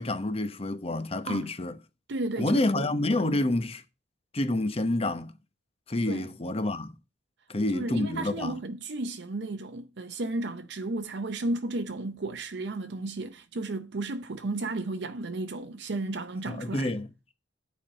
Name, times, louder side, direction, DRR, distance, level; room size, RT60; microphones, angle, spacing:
voice 1, 0.0-1.8 2.4-3.8 4.3-5.3 5.9-6.9 7.5-8.6 16.5-17.1, left 1 dB, 30° left, 0.9 m, -28 dB
voice 2, 2.1-2.9 3.2-3.4 6.1-6.3 7.7-16.9, right 2 dB, 65° right, 0.6 m, -33 dB
9.6 x 4.5 x 6.5 m
head